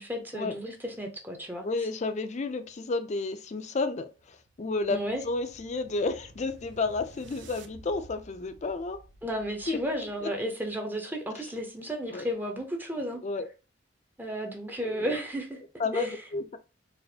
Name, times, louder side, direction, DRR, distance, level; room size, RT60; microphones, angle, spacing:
voice 1, 0.0-1.7 4.9-5.2 9.2-13.2 14.2-15.6 15.9-16.2, equal, 10° right, 0.6 m, -33 dB
voice 2, 1.6-5.0 5.2-9.0 9.7-9.8 10.2-10.3 12.1-12.3 13.2-13.5 14.8-15.1 15.8-16.6, left 3 dB, 40° left, 0.4 m, -31 dB
sound 1, 4.0-10.3, right 3 dB, 70° right, 0.5 m, -53 dB
4.1 x 2.4 x 2.7 m
head